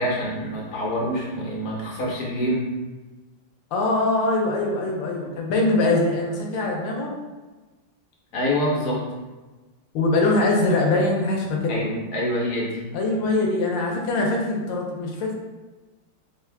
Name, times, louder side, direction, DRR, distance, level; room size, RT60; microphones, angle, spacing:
voice 1, 0.0-2.7 8.3-9.1 11.7-12.8, equal, 55° left, -4 dB, 1.0 m, -26 dB
voice 2, 3.7-7.1 9.9-11.8 12.9-15.3, left 2 dB, 75° left, 0 dB, 1.3 m, -22 dB
4.5 x 2.3 x 3.3 m, 1.2 s
omnidirectional pair, 2.3 m